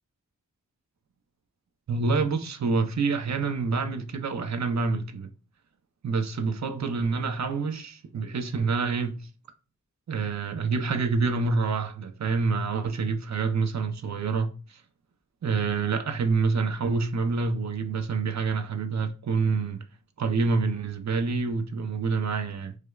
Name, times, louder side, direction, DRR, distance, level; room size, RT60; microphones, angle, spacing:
voice 1, 1.9-5.3 6.0-9.2 10.1-14.5 15.4-19.8 20.2-22.8, right 4 dB, 60° right, 0.5 m, -27 dB
4.8 x 2.1 x 2.3 m
cardioid pair, 50°, 32 cm